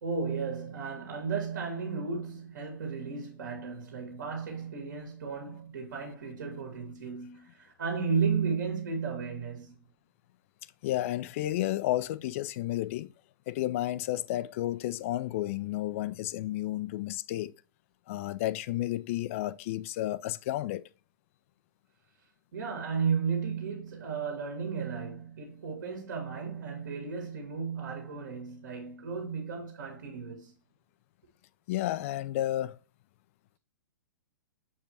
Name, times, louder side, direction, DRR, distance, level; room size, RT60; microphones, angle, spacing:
voice 1, 0.0-9.8 22.5-30.5, right 5 dB, 55° right, 2.0 m, -34 dB
voice 2, 10.8-13.1 13.5-17.5 18.1-20.8 31.7-32.8, left 14 dB, 35° left, 0.4 m, -32 dB
7.1 x 4.7 x 2.8 m
figure-of-eight pair, 110°, 12 cm